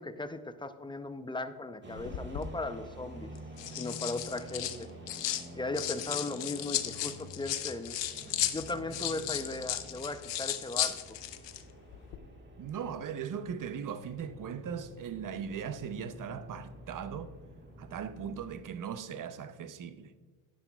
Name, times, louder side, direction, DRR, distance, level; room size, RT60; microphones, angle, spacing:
voice 1, 0.0-3.4 3.7-4.9 5.5-8.0 8.5-11.2, left 2 dB, 10° left, 0.5 m, -37 dB
sound 1, 1.8-18.6, equal, 25° right, 1.6 m, -49 dB
sound 2, 2.0-2.5 3.4-5.5 5.7-11.6 11.9-12.2, left 12 dB, 65° left, 0.8 m, -35 dB
voice 2, 12.6-17.3 17.8-20.1, right 7 dB, 40° right, 0.7 m, -39 dB
11.0 x 10.5 x 2.3 m
cardioid pair, 90°, 47 cm